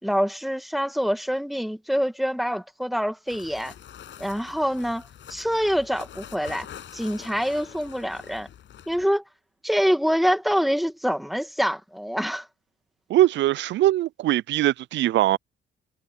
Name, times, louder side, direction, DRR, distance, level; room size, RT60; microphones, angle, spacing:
voice 1, 0.0-3.7 4.2-6.7 6.9-8.5 8.9-9.2 9.6-12.5, equal, ahead, 2.3 m, -25 dB
sound 1, 3.3-9.0, left 10 dB, 70° left, 7.6 m, -45 dB
voice 2, 13.1-15.4, right 14 dB, 65° right, 0.4 m, -21 dB
cardioid pair, 90°, 20 cm